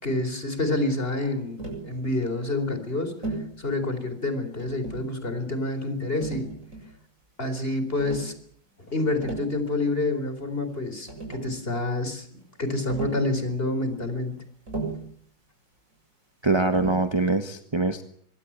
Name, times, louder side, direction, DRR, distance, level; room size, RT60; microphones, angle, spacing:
voice 1, 0.0-6.5 7.4-8.3 8.9-14.4, left 2 dB, 25° left, 10 dB, 4.4 m, -28 dB
Tap, 1.6-1.9 3.2-3.5 4.6-5.2 6.2-7.0 8.0-8.3 9.0-9.6 10.7-10.8 11.1-11.6 12.9-13.3 14.7-15.1 16.7-17.1, right 3 dB, 40° right, 7.9 m, -35 dB
voice 2, 16.4-18.0, right 3 dB, 15° right, 9 dB, 1.4 m, -23 dB
25.0 x 22.0 x 8.8 m, 0.62 s
omnidirectional pair, 2.1 m